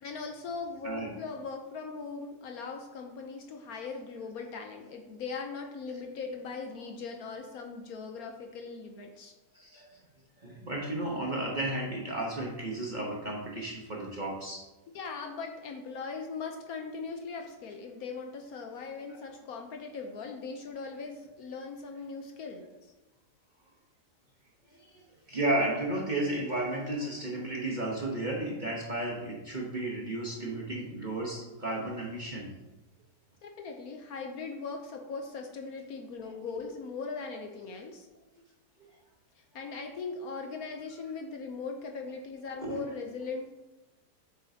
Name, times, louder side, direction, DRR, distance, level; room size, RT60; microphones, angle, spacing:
voice 1, 0.0-9.3 14.9-22.9 33.4-38.1 39.4-43.5, left 4 dB, 65° left, 3 dB, 1.1 m, -40 dB
voice 2, 9.5-10.0 10.4-14.6 19.1-19.2 24.7-32.5 38.8-39.0 42.6-42.8, right 1 dB, 35° right, -3 dB, 0.9 m, -33 dB
7.3 x 6.8 x 2.8 m, 1.1 s
omnidirectional pair, 1.8 m